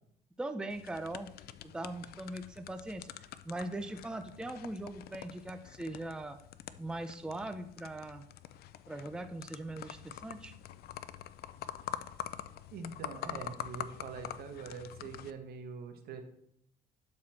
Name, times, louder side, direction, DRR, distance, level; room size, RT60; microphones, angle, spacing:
voice 1, 0.4-1.3 1.7-3.1 3.4-6.4 6.8-8.2 8.9-10.6, right 2 dB, 5° right, 8 dB, 0.5 m, -40 dB
sound 1, 0.7-15.3, left 11 dB, 65° left, 0.5 m, -46 dB
voice 2, 12.7-16.2, right 5 dB, 65° right, 6 dB, 1.4 m, -44 dB
12.0 x 4.3 x 4.4 m, 0.72 s
cardioid pair, 110°, 17 cm